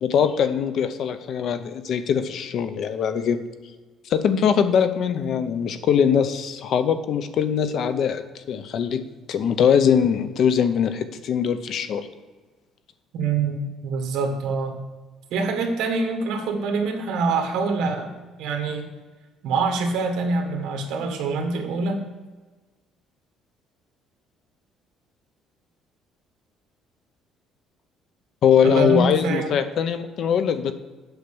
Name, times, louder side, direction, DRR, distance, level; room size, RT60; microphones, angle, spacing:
voice 1, 0.0-3.4 4.1-9.0 9.3-12.1 28.4-30.7, left 8 dB, 50° left, 10 dB, 0.7 m, -22 dB
voice 2, 13.1-14.8 15.3-18.9 19.4-22.0 28.6-29.5, right 4 dB, 75° right, 4 dB, 1.6 m, -25 dB
8.0 x 5.9 x 6.8 m, 1.3 s
cardioid pair, 160°, 0 cm